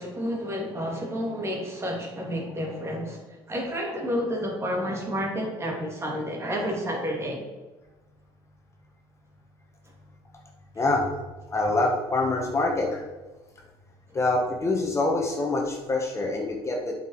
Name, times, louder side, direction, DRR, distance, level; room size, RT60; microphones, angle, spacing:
voice 1, 0.0-3.2 3.5-7.4, equal, 25° right, 0 dB, 2.6 m, -30 dB
voice 2, 10.7-11.1 11.5-13.0 14.1-16.9, left 2 dB, 25° left, 0 dB, 1.7 m, -25 dB
8.0 x 6.1 x 4.8 m, 1.1 s
cardioid pair, 95°, 10 cm